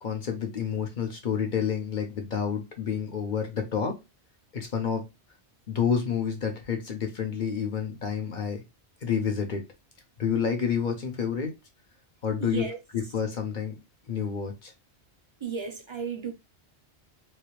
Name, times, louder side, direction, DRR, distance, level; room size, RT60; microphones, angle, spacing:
voice 1, 0.0-3.9 4.5-5.0 5.7-8.6 9.0-9.6 10.2-11.5 12.2-12.6 12.9-13.8 14.1-14.7, left 7 dB, 45° left, 1.0 m, -29 dB
voice 2, 12.4-12.8 15.4-16.3, right 5 dB, 30° right, 0.7 m, -33 dB
3.1 x 2.9 x 3.0 m
omnidirectional pair, 1.1 m